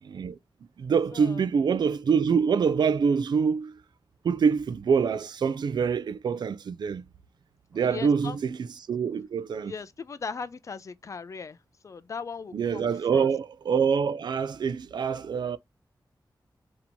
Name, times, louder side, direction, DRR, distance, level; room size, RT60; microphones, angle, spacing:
voice 1, 0.0-0.4 0.8-3.8 4.2-7.0 7.7-9.7 12.5-15.6, right 6 dB, 65° right, 0.3 m, -25 dB
voice 2, 1.1-1.5 7.7-8.4 9.6-11.6 11.8-13.3, left 5 dB, 40° left, 0.4 m, -38 dB
2.8 x 2.7 x 4.3 m
wide cardioid pair, 140°, 8 cm